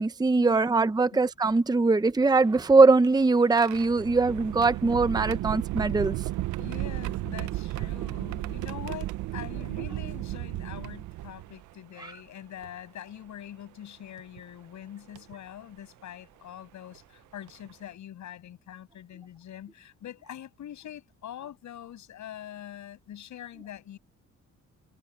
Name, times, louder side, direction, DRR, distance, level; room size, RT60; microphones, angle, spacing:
voice 1, 0.0-6.2, right 3 dB, 15° right, 0.8 m, -22 dB
sound 1, 2.4-11.7 12.6-12.7 14.2-14.4 15.1-15.3 16.9-17.0 17.5-17.7, right 16 dB, 75° right, 0.6 m, -34 dB
voice 2, 6.6-24.0, left 11 dB, 70° left, 7.0 m, -44 dB
cardioid pair, 90°, 30 cm